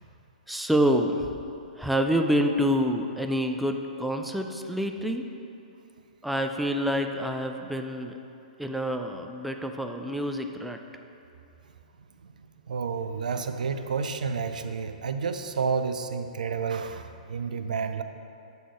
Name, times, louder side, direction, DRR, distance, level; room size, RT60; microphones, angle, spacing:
voice 1, 0.5-1.3 1.8-5.2 6.2-8.1 8.6-10.8, equal, ahead, 4 dB, 0.3 m, -27 dB
voice 2, 12.7-18.0, right 5 dB, 75° right, 9 dB, 0.4 m, -30 dB
8.3 x 4.0 x 4.6 m, 2.7 s
hypercardioid pair, 120°, 4 cm